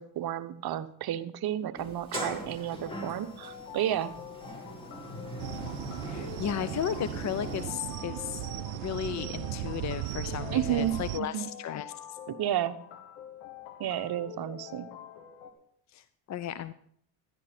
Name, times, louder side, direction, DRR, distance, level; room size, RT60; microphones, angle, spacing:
voice 1, 0.0-4.1 10.5-11.5 12.3-12.8 13.8-14.9, right 11 dB, 50° right, 12 dB, 0.9 m, -32 dB
Sliding door, 1.8-7.7, right 1 dB, 10° left, 3.4 m, -41 dB
sound 1, 2.8-15.5, left 9 dB, 85° left, 1.6 m, -46 dB
sound 2, 5.4-11.2, right 17 dB, 85° right, 0.5 m, -37 dB
voice 2, 6.0-8.4 8.7-12.2 15.9-16.7, left 10 dB, 35° left, 14 dB, 0.5 m, -35 dB
13.0 x 11.0 x 4.3 m, 0.65 s
supercardioid pair, 80°, 49 cm